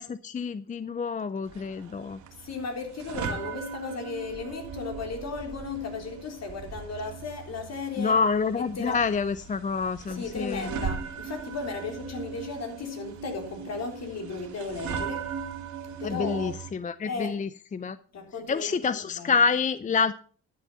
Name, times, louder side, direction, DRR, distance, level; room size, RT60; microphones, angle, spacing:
voice 1, 0.0-2.2 8.0-10.7 16.0-18.0 18.5-20.2, left 5 dB, 25° left, 0.5 m, -27 dB
sound 1, 1.4-16.7, right 6 dB, 75° right, 2.5 m, -39 dB
voice 2, 2.4-8.2 8.8-9.0 10.1-15.4 16.0-16.5 17.1-17.4 18.1-19.3, left 4 dB, 60° left, 3.7 m, -35 dB
12.0 x 7.4 x 5.5 m
cardioid pair, 90°, 30 cm